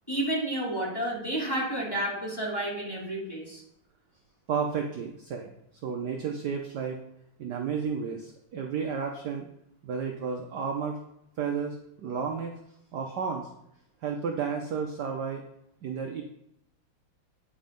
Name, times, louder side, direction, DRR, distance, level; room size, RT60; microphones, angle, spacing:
voice 1, 0.1-3.6, right 1 dB, 10° left, -5 dB, 2.5 m, -31 dB
voice 2, 4.5-5.5 5.8-7.0 7.4-9.5 9.8-11.0 11.4-12.5 12.9-13.5 14.0-15.4 15.8-16.2, right 6 dB, 60° right, 3 dB, 1.2 m, -32 dB
9.5 x 5.2 x 5.2 m, 0.77 s
omnidirectional pair, 2.4 m